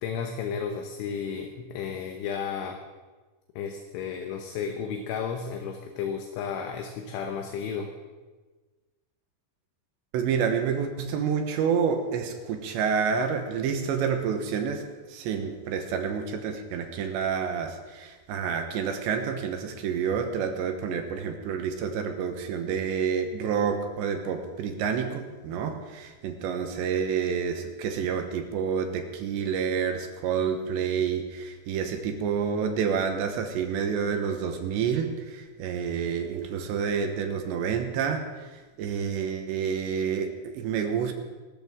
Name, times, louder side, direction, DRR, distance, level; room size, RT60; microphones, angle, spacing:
voice 1, 0.0-2.8 3.6-7.9, left 6 dB, 75° left, 4 dB, 3.2 m, -33 dB
voice 2, 10.1-41.1, right 6 dB, 70° right, 5 dB, 3.1 m, -29 dB
24.0 x 13.5 x 3.8 m, 1.3 s
omnidirectional pair, 5.9 m